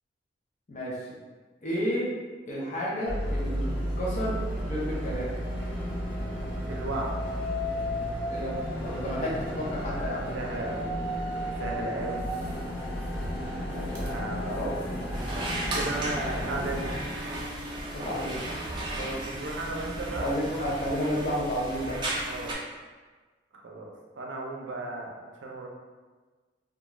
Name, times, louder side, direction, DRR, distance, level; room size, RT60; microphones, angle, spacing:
voice 1, 1.6-2.1 2.5-5.4 8.3-10.3 13.7-14.2 14.6-14.7 17.9-18.4 20.2-22.0, equal, 40° left, -6 dB, 0.6 m, -31 dB
sound 1, 3.1-17.0, equal, 90° left, 0.8 m, -33 dB
voice 2, 6.6-7.1 10.3-11.0 11.4-12.3 14.0-14.6 15.7-17.0 19.0-20.3 22.3-22.6 23.6-25.1 25.4-25.7, right 2 dB, 80° right, 0 dB, 0.5 m, -35 dB
sound 2, 11.8-22.1, right 1 dB, 55° right, 0.8 m, -48 dB
sound 3, 15.1-22.5, right 1 dB, 25° right, 0.5 m, -35 dB
2.4 x 2.3 x 3.0 m, 1.4 s
head